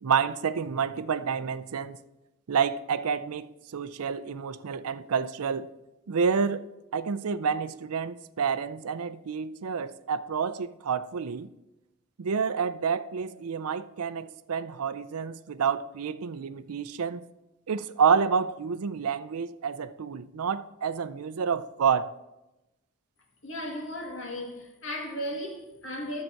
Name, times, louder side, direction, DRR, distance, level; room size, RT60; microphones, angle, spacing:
voice 1, 0.0-2.0 2.5-5.7 6.1-6.6 6.9-11.5 12.2-17.2 17.7-22.1, right 6 dB, 85° right, 0.5 m, -29 dB
voice 2, 23.4-26.2, equal, 60° left, 2.0 m, -35 dB
10.5 x 7.4 x 4.6 m
head